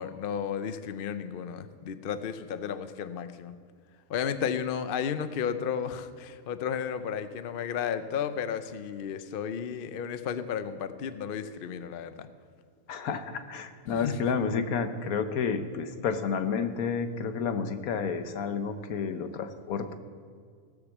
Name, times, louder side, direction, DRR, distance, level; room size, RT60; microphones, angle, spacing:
voice 1, 0.0-3.6 4.1-12.3 13.9-14.3, left 7 dB, 55° left, 11 dB, 0.6 m, -33 dB
voice 2, 12.9-19.9, left 6 dB, 80° left, 9 dB, 1.3 m, -30 dB
16.5 x 6.6 x 7.2 m, 2.1 s
omnidirectional pair, 1.5 m